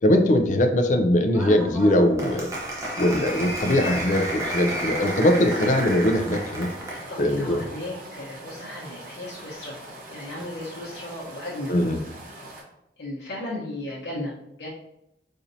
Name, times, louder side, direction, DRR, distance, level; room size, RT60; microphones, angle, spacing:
voice 1, 0.0-2.5 3.0-6.7 7.2-7.6 11.7-12.0, left 1 dB, 45° left, 5 dB, 0.4 m, -21 dB
Applause, 1.3-7.1, right 1 dB, 15° right, 0.7 m, -32 dB
sound 1, 3.2-12.6, right 1 dB, 50° right, 0.8 m, -43 dB
voice 2, 6.9-11.7 13.0-14.3 14.6-14.7, left 1 dB, 70° left, -6 dB, 0.9 m, -36 dB
4.3 x 2.6 x 2.6 m, 0.83 s
head